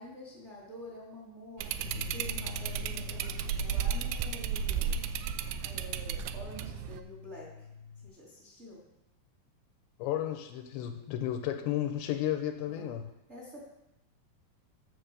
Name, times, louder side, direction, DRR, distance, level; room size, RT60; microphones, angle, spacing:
voice 1, 0.0-5.0 5.6-7.5 8.0-8.8 12.6-12.9 13.3-13.6, left 1 dB, 35° right, -5 dB, 1.1 m, -48 dB
sound 1, 1.6-7.0, right 8 dB, 85° right, 2.6 m, -34 dB
sound 2, 1.8-8.1, left 6 dB, 65° right, 3.7 m, -45 dB
voice 2, 10.0-13.1, left 11 dB, 80° left, 7 dB, 2.7 m, -33 dB
10.0 x 6.4 x 6.7 m, 0.90 s
omnidirectional pair, 5.3 m